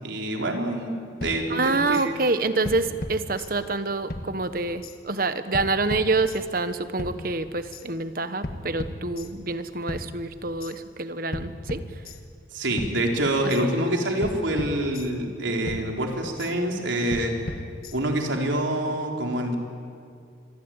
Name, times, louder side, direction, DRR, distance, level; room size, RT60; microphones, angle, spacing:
voice 1, 0.0-1.0 1.2-2.1 12.5-17.3 17.9-19.6, right 1 dB, 80° right, 2 dB, 4.1 m, -26 dB
sound 1, 1.2-2.1 2.6-3.8 4.1-5.0 5.5-6.6 7.0-7.9 8.4-9.6 9.9-10.7 11.3-12.5 12.8-13.6 14.2-15.4 15.7-16.5 17.1-18.3, left 1 dB, 50° left, 1.8 m, -37 dB
voice 2, 1.5-11.8, right 3 dB, 50° right, 11 dB, 1.2 m, -27 dB
26.5 x 22.5 x 9.1 m, 2.4 s
head